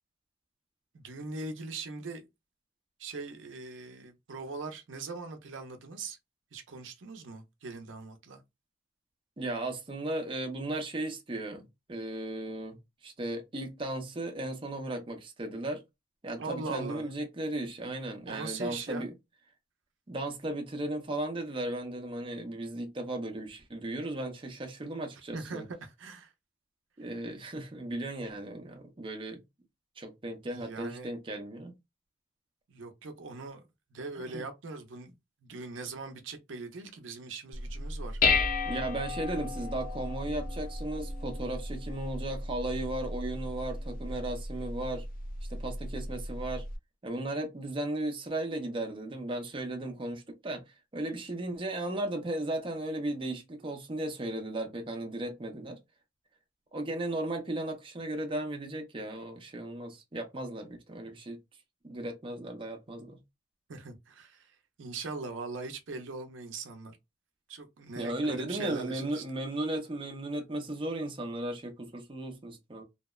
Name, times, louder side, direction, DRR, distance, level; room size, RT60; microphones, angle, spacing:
voice 1, 0.9-2.3 3.0-6.2 6.5-8.4 16.4-17.1 18.3-19.1 25.3-26.3 30.6-31.1 32.7-35.1 35.4-38.2 63.7-67.0 67.5-69.2, right 3 dB, 80° right, 0.5 m, -41 dB
voice 2, 9.4-15.8 16.2-19.1 20.1-25.6 27.0-29.4 30.0-31.7 34.3-34.4 38.6-45.1 45.5-46.6 47.0-55.8 56.7-61.4 61.8-63.2 67.9-72.8, right 1 dB, 25° right, 0.5 m, -36 dB
Dishes pots and pans, 37.5-46.8, left 3 dB, 45° left, 0.4 m, -34 dB
2.8 x 2.0 x 2.2 m
head